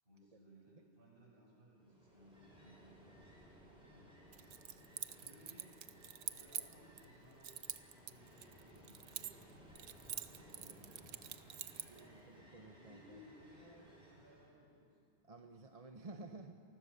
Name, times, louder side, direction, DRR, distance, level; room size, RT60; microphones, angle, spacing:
voice 1, 0.0-3.9 4.9-5.8 6.2-7.5 8.0-9.6 10.0-11.1 11.7-12.4 12.8-14.9, equal, 50° right, -4 dB, 7.6 m, -63 dB
Ocean, 1.7-14.5, equal, 5° right, 7.5 m, -61 dB
Keys jangling, 4.3-7.1 7.4-9.5 9.8-12.0, right 9 dB, 85° right, 1.1 m, -46 dB
voice 2, 11.9-13.2 15.2-16.5, right 3 dB, 35° right, 5 dB, 1.0 m, -54 dB
27.5 x 20.5 x 6.8 m, 2.6 s
omnidirectional pair, 1.2 m